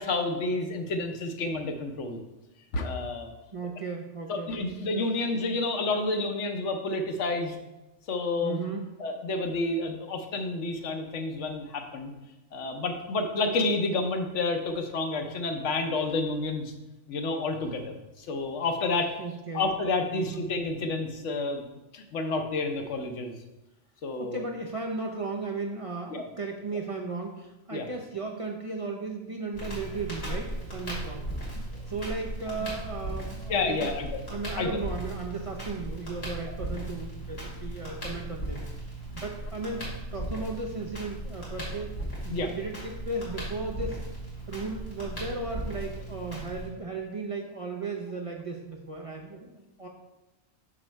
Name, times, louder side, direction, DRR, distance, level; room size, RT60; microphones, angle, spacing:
voice 1, 0.0-2.2 2.7-3.3 4.3-7.5 8.1-8.6 9.0-12.1 12.5-16.7 17.1-19.1 19.5-21.6 21.9-23.3 24.0-24.4 26.1-26.2 27.7-27.9 33.5-34.1 34.6-34.7 36.5-36.6 42.3-42.5, left 3 dB, 85° left, 5 dB, 1.1 m, -29 dB
voice 2, 3.5-4.5 8.4-8.9 19.2-19.7 20.1-20.4 24.2-31.3 31.9-33.9 34.3-41.9 42.2-44.0 44.5-49.9, right 3 dB, 40° right, 0 dB, 0.5 m, -35 dB
Crackle, 29.5-46.7, right 1 dB, 60° left, 2.4 m, -37 dB
6.1 x 4.2 x 4.4 m, 1.0 s
omnidirectional pair, 1.2 m